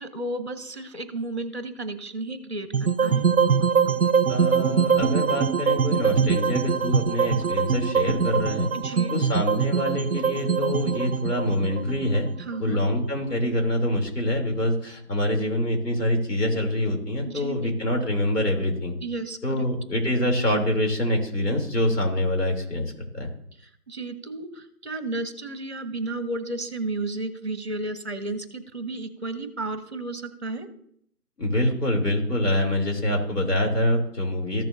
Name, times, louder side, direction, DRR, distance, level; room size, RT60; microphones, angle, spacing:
voice 1, 0.0-3.3 8.7-9.1 12.5-12.8 17.2-18.1 19.0-19.7 23.6-30.7, right 2 dB, 45° right, 10 dB, 1.0 m, -33 dB
sound 1, 2.7-12.9, right 6 dB, 65° right, 0.7 m, -23 dB
voice 2, 4.3-8.7 9.1-12.3 12.6-19.0 19.4-23.3 31.4-34.6, left 1 dB, 90° left, 1 dB, 3.2 m, -25 dB
14.0 x 6.7 x 2.6 m, 0.67 s
figure-of-eight pair, 180°, 46 cm